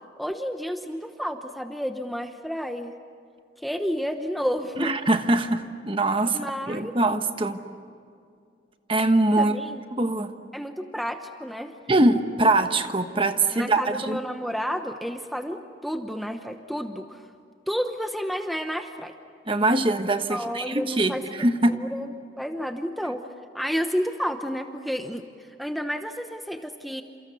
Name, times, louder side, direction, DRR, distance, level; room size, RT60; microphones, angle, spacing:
voice 1, 0.2-2.9 3.6-4.9 6.2-6.9 9.4-9.8 10.5-11.7 13.5-17.3 17.7-19.1 20.3-23.2 23.5-27.0, equal, ahead, 6 dB, 0.9 m, -31 dB
voice 2, 4.8-7.6 8.9-9.6 9.9-10.3 11.9-14.2 19.5-21.8, right 2 dB, 30° right, 8 dB, 1.3 m, -23 dB
30.0 x 28.5 x 7.0 m, 2.3 s
head